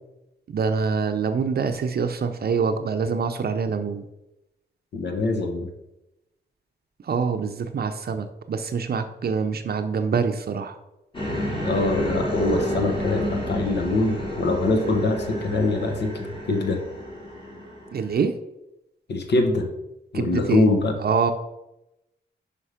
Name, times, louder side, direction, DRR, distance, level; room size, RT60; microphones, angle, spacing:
voice 1, 0.5-4.0 7.0-10.8 17.9-18.4 20.1-20.7 21.0-21.3, right 5 dB, 60° right, 7 dB, 0.6 m, -25 dB
voice 2, 4.9-5.7 11.6-16.8 19.1-19.7 20.1-20.9, left 3 dB, 65° left, 4 dB, 1.1 m, -24 dB
sound 1, 11.1-18.1, equal, 30° left, 2.4 m, -29 dB
5.5 x 5.2 x 4.9 m, 0.91 s
cardioid pair, 75°, 19 cm